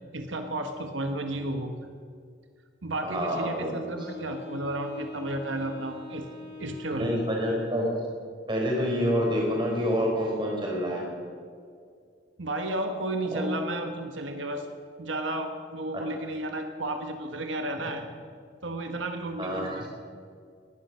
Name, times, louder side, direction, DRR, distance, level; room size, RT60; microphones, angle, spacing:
voice 1, 0.1-1.7 2.8-6.3 6.6-7.2 12.4-14.7 15.0-18.0 18.6-19.9, right 1 dB, 90° right, 5 dB, 1.3 m, -32 dB
voice 2, 3.0-3.7 6.9-7.9 8.5-11.0 13.3-13.4 19.4-19.9, equal, 25° right, -2 dB, 4.2 m, -27 dB
Wind instrument woodwind instrument, 4.0-8.1, left 3 dB, 65° left, 4.0 m, -43 dB
19.0 x 11.5 x 5.6 m, 2.2 s
head